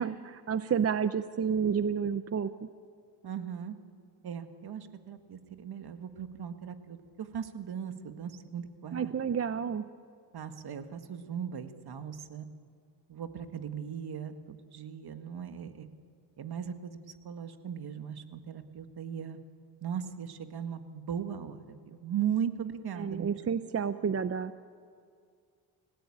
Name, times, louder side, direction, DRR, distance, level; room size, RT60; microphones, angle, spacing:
voice 1, 0.0-2.7 8.9-9.9 23.0-24.5, right 7 dB, 35° right, 12 dB, 0.7 m, -30 dB
voice 2, 3.2-3.8 4.2-9.1 10.3-12.5 13.1-15.9 16.4-17.0 17.2-19.4 19.8-23.3, right 8 dB, 60° right, 8 dB, 1.8 m, -38 dB
30.0 x 17.0 x 8.7 m, 2.2 s
cardioid pair, 95°, 43 cm